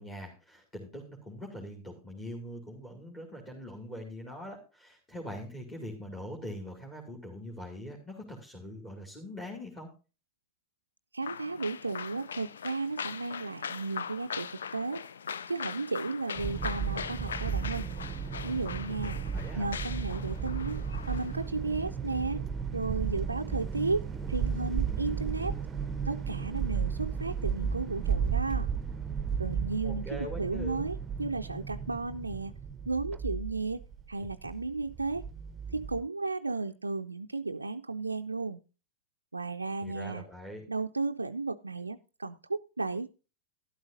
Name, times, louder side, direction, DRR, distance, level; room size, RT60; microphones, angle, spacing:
voice 1, 0.0-9.9 19.3-19.7 29.8-30.9 39.8-40.7, equal, 15° left, 0 dB, 2.4 m, -42 dB
voice 2, 11.1-15.0 15.5-17.9 18.4-19.2 19.6-22.4 22.7-25.6 26.1-28.7 29.4-32.5 32.9-33.8 34.1-35.2 35.7-38.6 39.3-40.2 40.7-43.1, right 3 dB, 80° right, 6 dB, 0.4 m, -34 dB
sound 1, 11.2-21.5, left 7 dB, 65° left, 0.5 m, -41 dB
sound 2, 16.4-36.0, right 6 dB, 15° right, 0.8 m, -34 dB
12.5 x 12.0 x 2.7 m, 0.33 s
figure-of-eight pair, 90°, 0 cm